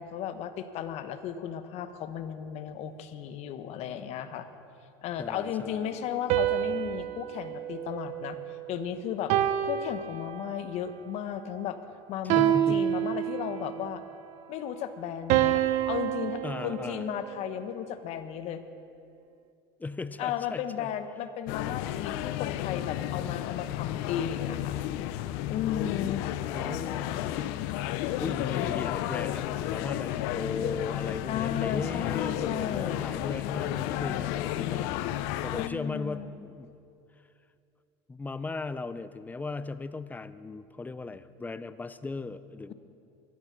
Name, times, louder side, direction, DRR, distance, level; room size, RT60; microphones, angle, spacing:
voice 1, 0.0-4.5 5.0-8.4 8.7-9.3 9.6-11.8 12.1-14.0 14.5-18.6 20.2-24.8 25.5-26.2 31.3-33.1 35.5-36.3, left 9 dB, 55° left, 10 dB, 0.9 m, -35 dB
voice 2, 5.2-6.0 12.2-12.9 16.4-17.0 19.8-20.9 26.5-27.7 28.2-36.7 38.1-42.7, left 3 dB, 15° left, 14 dB, 0.5 m, -37 dB
sound 1, 6.3-8.7 9.3-10.8 12.3-13.8 15.3-17.6, right 13 dB, 60° right, 0.6 m, -28 dB
sound 2, 21.5-35.7, left 13 dB, 70° left, 0.5 m, -32 dB
12.5 x 10.5 x 5.8 m, 2.6 s
supercardioid pair, 105°, 13 cm